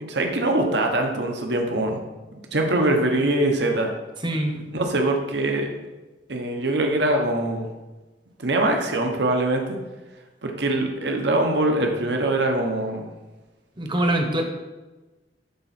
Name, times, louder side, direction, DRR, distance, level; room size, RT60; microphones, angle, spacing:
voice 1, 0.0-2.0 2.5-3.9 4.7-5.7 6.3-7.7 8.4-9.6 10.4-13.0, right 2 dB, 65° right, 3 dB, 1.1 m, -23 dB
voice 2, 4.2-4.7 13.8-14.4, right 1 dB, 25° right, 4 dB, 1.0 m, -24 dB
10.5 x 4.0 x 4.2 m, 1.1 s
head